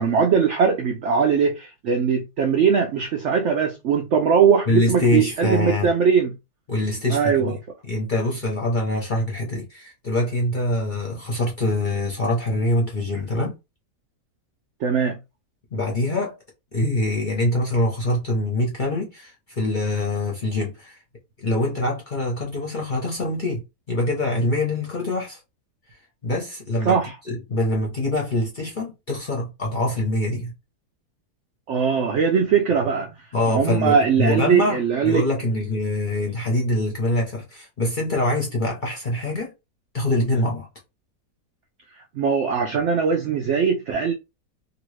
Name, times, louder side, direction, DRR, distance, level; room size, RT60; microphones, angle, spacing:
voice 1, 0.0-6.3 7.1-7.5 14.8-15.2 26.9-27.1 31.7-33.1 33.5-35.2 42.1-44.1, right 6 dB, 75° right, 0.6 m, -20 dB
voice 2, 4.7-5.9 6.7-7.5 7.9-13.5 15.7-16.4 16.7-21.0 21.4-25.4 26.2-27.0 27.3-30.5 33.3-39.5 39.9-40.7, left 1 dB, 40° left, 0.7 m, -24 dB
2.9 x 2.6 x 3.1 m
omnidirectional pair, 1.8 m